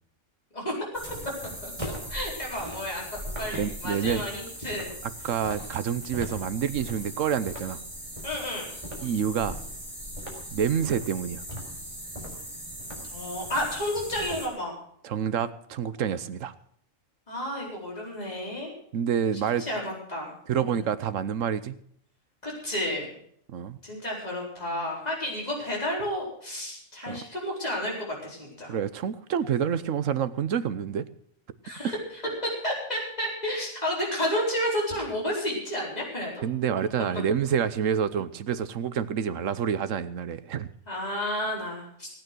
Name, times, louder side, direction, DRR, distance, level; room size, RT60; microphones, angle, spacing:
sound 1, 0.9-14.5, equal, 25° right, 3.8 m, -39 dB
voice 1, 2.1-4.9 8.2-8.7 13.0-14.8 17.3-18.7 19.6-20.8 22.4-23.1 23.8-27.9 28.2-28.7 31.6-36.4 40.9-42.1, equal, 30° left, -3 dB, 4.5 m, -31 dB
voice 2, 3.5-4.3 5.0-7.8 9.0-9.6 10.5-11.4 15.0-16.5 18.9-19.7 20.5-21.7 23.5-23.8 27.1-27.2 28.7-31.1 31.8-31.9 36.4-40.7, right 8 dB, 75° right, 14 dB, 1.2 m, -28 dB
17.5 x 9.2 x 6.1 m, 0.66 s
omnidirectional pair, 1.4 m